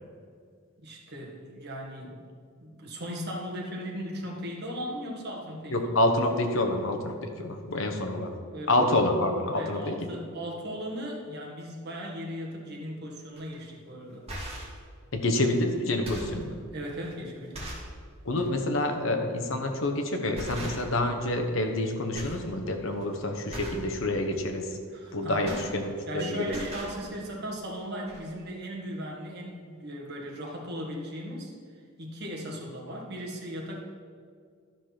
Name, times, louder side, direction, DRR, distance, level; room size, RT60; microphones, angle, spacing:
voice 1, 0.8-2.3 2.6-5.8 8.5-9.1 9.5-14.2 16.7-17.7 24.9-25.6 26.1-31.5 32.0-33.8, equal, 50° right, -1 dB, 1.7 m, -37 dB
voice 2, 5.7-8.3 8.7-10.1 15.1-16.6 18.2-24.8 25.1-26.5, left 1 dB, 65° left, 4 dB, 1.0 m, -27 dB
sound 1, 13.4-13.5 14.1-14.8 15.4-15.6 15.9-16.4 17.0-17.1 17.5-17.9 18.3-18.5 19.7-19.9 20.3-21.1 21.4-21.9 22.1-22.5 22.8-23.0 23.5-23.9 25.1-26.2 26.4-27.0 27.7-27.8 28.1-28.2, right 1 dB, 30° right, 2.2 m, -40 dB
12.0 x 5.0 x 5.9 m, 2.1 s
head